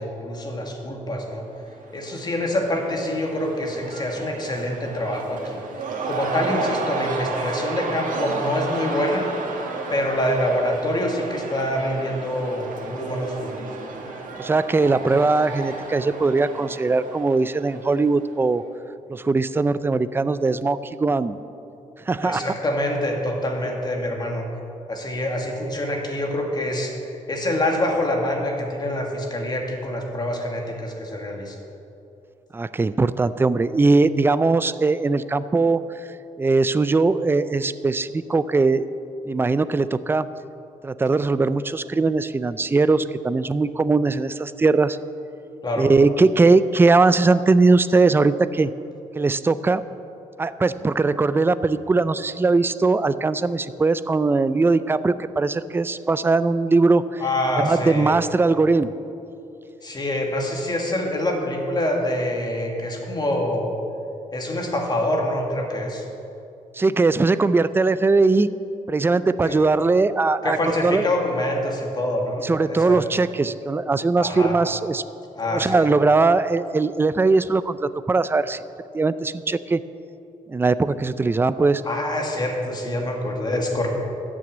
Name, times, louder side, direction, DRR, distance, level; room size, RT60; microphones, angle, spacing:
voice 1, 0.0-1.4 1.9-9.3 9.9-13.5 22.2-24.5 24.9-31.6 45.6-45.9 57.2-58.2 59.8-63.8 64.3-66.0 69.4-69.6 70.4-73.0 74.2-74.6 75.4-75.8 81.8-83.9, left 1 dB, 30° left, 1 dB, 1.9 m, -26 dB
Cheering / Crowd, 1.5-18.4, right 3 dB, 70° right, 1.9 m, -33 dB
voice 2, 14.4-18.6 19.1-21.4 22.1-22.5 32.5-35.8 36.4-38.9 39.3-40.3 40.8-45.0 45.8-48.7 49.1-49.8 50.4-57.2 57.6-58.9 66.7-68.5 68.9-70.6 70.8-71.1 72.4-75.0 75.4-78.6 78.9-79.8 80.5-81.8, right 3 dB, 15° right, 14 dB, 0.4 m, -20 dB
13.0 x 6.3 x 8.6 m, 2.8 s
cardioid pair, 115°, 14 cm